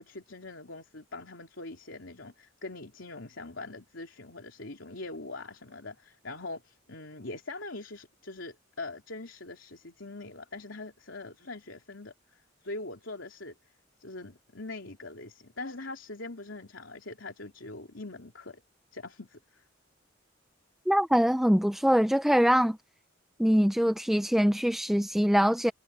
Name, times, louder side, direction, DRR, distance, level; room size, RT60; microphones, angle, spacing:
voice 1, 0.0-13.5 14.0-18.6 18.9-19.6, left 2 dB, 70° left, 3.5 m, -42 dB
voice 2, 20.9-22.8 23.4-25.7, equal, ahead, 0.5 m, -23 dB
head